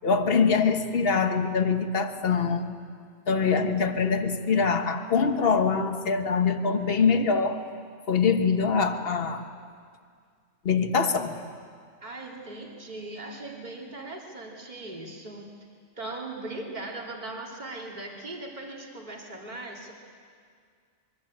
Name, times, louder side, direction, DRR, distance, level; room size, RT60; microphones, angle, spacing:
voice 1, 0.0-2.8 3.3-7.6 8.1-9.4 10.6-11.4, left 5 dB, 50° left, 7 dB, 1.5 m, -24 dB
voice 2, 12.0-15.5 16.0-19.9, right 2 dB, 35° right, -1 dB, 3.0 m, -39 dB
24.5 x 22.5 x 8.7 m, 2.1 s
omnidirectional pair, 1.3 m